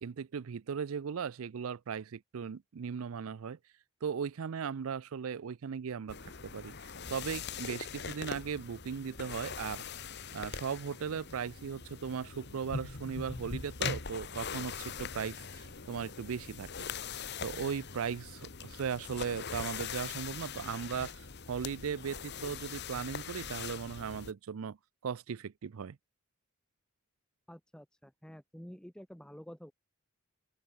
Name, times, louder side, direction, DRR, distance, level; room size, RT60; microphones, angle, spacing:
voice 1, 0.0-3.6 4.0-6.7 7.1-9.8 10.3-16.7 17.4-24.8 25.0-26.0, right 6 dB, 80° right, 0.5 m, -37 dB
sound 1, 6.1-24.3, left 6 dB, 50° left, 1.4 m, -42 dB
sound 2, 11.6-18.6, right 1 dB, 35° right, 7.5 m, -70 dB
voice 2, 27.5-29.7, equal, 5° left, 0.8 m, -49 dB
open air
head